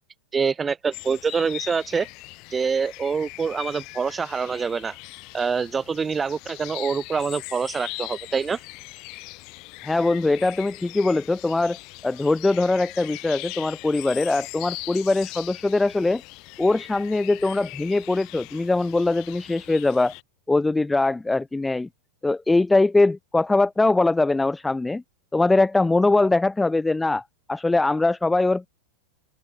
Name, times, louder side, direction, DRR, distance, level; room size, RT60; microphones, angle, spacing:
voice 1, 0.3-2.1 2.5-4.9 5.3-8.6, right 5 dB, 15° right, 0.8 m, -25 dB
sound 1, 0.9-20.2, left 26 dB, 40° left, 5.2 m, -40 dB
voice 2, 9.8-11.8 12.0-16.2 16.6-20.1 20.5-21.9 22.2-25.0 25.3-27.2 27.5-28.7, left 2 dB, 10° left, 0.3 m, -22 dB
open air
figure-of-eight pair, 90°, 0 cm